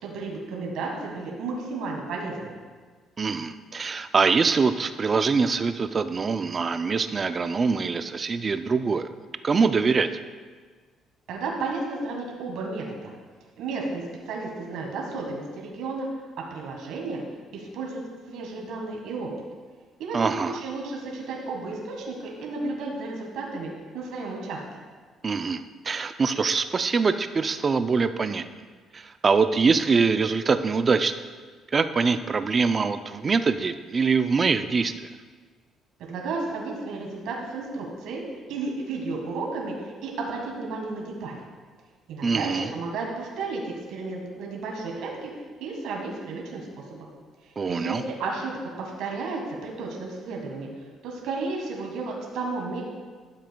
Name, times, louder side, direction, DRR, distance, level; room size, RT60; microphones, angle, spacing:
voice 1, 0.0-2.6 11.3-13.1 13.6-16.1 16.5-17.2 17.5-19.3 20.0-24.6 36.0-38.2 38.5-41.4 42.1-45.3 45.6-47.1 47.7-50.7 51.0-52.8, right 3 dB, 80° right, -1 dB, 1.6 m, -33 dB
voice 2, 3.2-9.1 9.4-10.1 20.1-20.6 25.2-28.4 28.9-31.1 31.7-35.1 42.2-42.7 47.6-48.0, right 5 dB, 35° right, 10 dB, 0.4 m, -24 dB
12.5 x 7.4 x 2.3 m, 1.5 s
cardioid pair, 110°, 0 cm